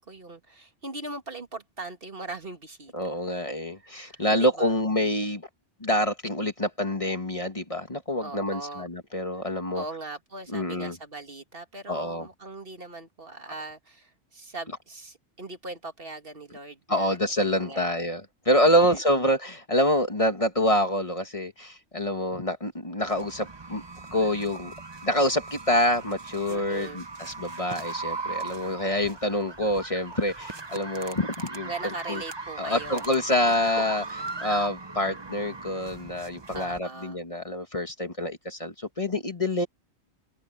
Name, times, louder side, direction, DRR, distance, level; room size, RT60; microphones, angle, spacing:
voice 1, 0.0-2.9 3.8-4.8 8.2-8.9 9.3-17.2 17.6-18.0 18.8-19.3 26.5-27.0 31.7-33.4 36.5-37.2, right 2 dB, 55° right, 2.3 m, -40 dB
voice 2, 2.9-5.4 5.8-9.8 10.5-11.0 11.9-12.3 16.9-23.8 24.1-24.7 25.0-31.7 32.1-32.2 32.6-34.0 34.4-39.7, left 1 dB, 30° left, 1.8 m, -26 dB
sound 1, 23.0-36.8, right 3 dB, 25° right, 1.0 m, -39 dB
omnidirectional pair, 1.1 m